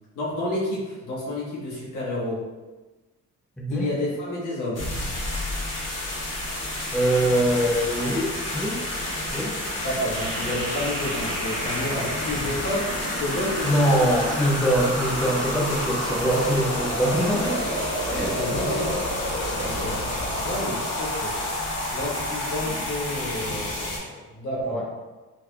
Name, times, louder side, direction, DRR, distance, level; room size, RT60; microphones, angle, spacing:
voice 1, 0.1-2.4 3.7-4.8 9.8-14.1 18.2-19.0 19.6-21.4 21.9-25.0, left 1 dB, 80° left, -7 dB, 1.3 m, -30 dB
voice 2, 3.6-3.9 6.9-8.8 9.3-9.5 13.6-17.6 18.1-18.4 18.6-18.8 24.6-25.0, right 1 dB, ahead, -3 dB, 0.6 m, -23 dB
sound 1, 4.7-24.0, left 1 dB, 55° left, 1.1 m, -30 dB
sound 2, 10.1-20.6, right 1 dB, 55° right, 0.8 m, -33 dB
3.8 x 2.9 x 2.2 m, 1.2 s
cardioid pair, 90°, 30 cm